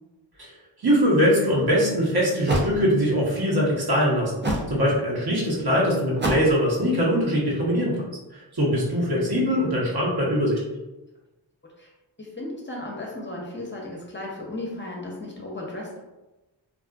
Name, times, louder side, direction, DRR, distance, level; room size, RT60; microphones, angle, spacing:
voice 1, 0.8-4.3 4.7-8.0 8.3-10.6, equal, 55° right, -5 dB, 1.1 m, -22 dB
sound 1, 1.6-1.7 2.5-2.7 4.4-4.7 6.2-6.6, right 1 dB, 25° right, 0.5 m, -25 dB
voice 2, 12.2-16.0, left 2 dB, 25° left, -3 dB, 0.7 m, -35 dB
2.6 x 2.4 x 2.4 m, 1.0 s
cardioid pair, 45°, 45 cm